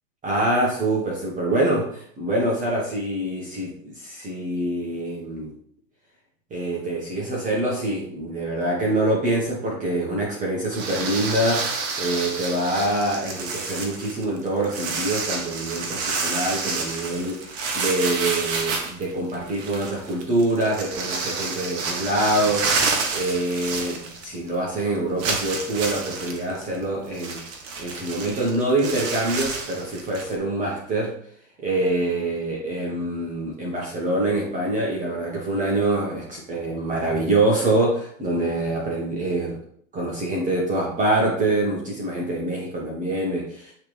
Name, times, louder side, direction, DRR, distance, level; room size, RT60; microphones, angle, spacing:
voice 1, 0.2-5.5 6.5-27.4 27.8-31.1 31.6-39.6 39.9-43.7, right 1 dB, 20° right, -3 dB, 1.3 m, -25 dB
sound 1, 10.7-24.5 24.8-24.9 25.2-30.4, right 4 dB, 35° right, 1.1 m, -29 dB
8.3 x 3.4 x 3.3 m, 0.62 s
supercardioid pair, 135°, 40 cm